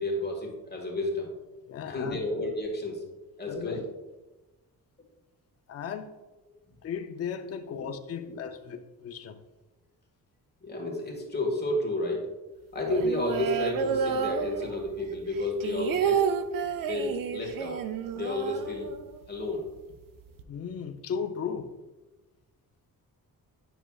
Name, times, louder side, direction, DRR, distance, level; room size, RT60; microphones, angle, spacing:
voice 1, 0.0-1.3 1.8-3.0 3.4-3.8 7.8-7.9 8.3-8.4 10.6-12.3 12.7-16.3 16.9-17.8 18.1-18.9 19.3-19.7, left 1 dB, 25° left, -1 dB, 1.5 m, -31 dB
voice 2, 1.7-2.2 3.5-3.8 5.7-6.1 6.8-9.4 20.5-21.7, left 7 dB, 40° left, 6 dB, 0.5 m, -36 dB
sound 1, 12.8-15.0 15.3-19.3 19.6-19.7 19.9-20.4, right 7 dB, 65° right, 0.5 m, -30 dB
8.9 x 6.1 x 2.3 m, 1.1 s
wide cardioid pair, 140°, 36 cm